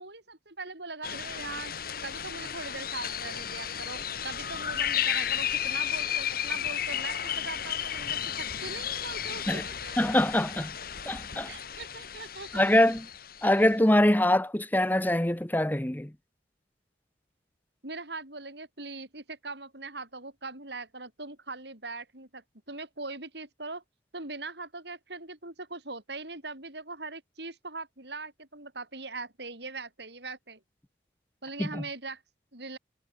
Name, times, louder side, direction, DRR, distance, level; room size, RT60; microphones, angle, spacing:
voice 1, 0.0-1.7 2.0-10.0 11.5-12.7 17.8-23.8 24.1-30.6 31.4-32.2 32.5-32.8, right 3 dB, 65° right, 6.8 m, -41 dB
sound 1, 1.0-13.6, left 9 dB, 55° left, 2.0 m, -33 dB
voice 2, 10.0-10.7 11.1-11.5 12.5-13.1 13.4-16.1 31.6-31.8, left 1 dB, 10° left, 0.8 m, -24 dB
head